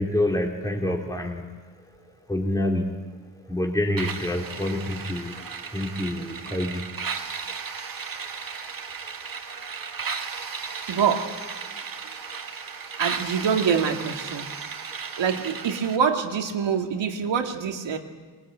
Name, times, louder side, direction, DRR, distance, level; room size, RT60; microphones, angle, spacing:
voice 1, 0.0-1.4 2.3-3.0 3.5-5.3 5.7-6.8, left 1 dB, 10° left, 0 dB, 3.3 m, -26 dB
sound 1, 4.0-16.0, right 5 dB, 50° right, 2.0 m, -35 dB
voice 2, 10.9-11.4 13.0-14.5 15.2-18.0, right 7 dB, 80° right, 3 dB, 2.6 m, -25 dB
24.0 x 19.0 x 9.1 m, 1.4 s
cardioid pair, 110°, 44 cm